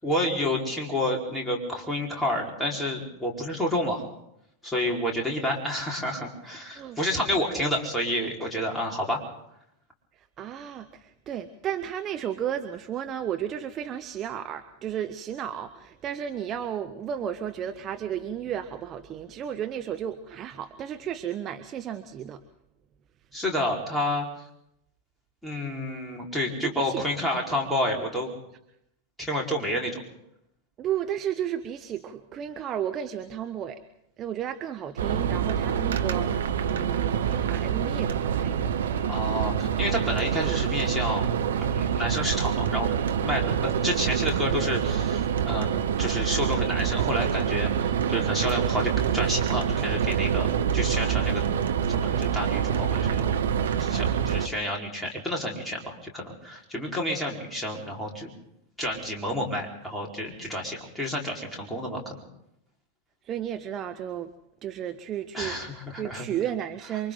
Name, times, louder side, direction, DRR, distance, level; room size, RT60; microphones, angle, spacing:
voice 1, 0.0-4.1 4.6-9.2 23.3-24.3 25.4-28.3 29.2-30.0 39.1-41.3 41.7-42.9 43.2-45.7 46.0-50.5 50.7-51.4 51.9-53.4 53.8-58.3 58.8-62.1 65.3-66.3, left 1 dB, 5° left, -2 dB, 4.5 m, -29 dB
voice 2, 10.2-22.4 26.6-27.0 30.8-33.8 34.2-38.7 63.2-64.3 64.6-67.1, right 10 dB, 30° right, 8 dB, 1.0 m, -33 dB
sound 1, 35.0-54.5, right 8 dB, 65° right, 1.1 m, -26 dB
28.0 x 24.0 x 3.9 m, 0.79 s
figure-of-eight pair, 90°, 0 cm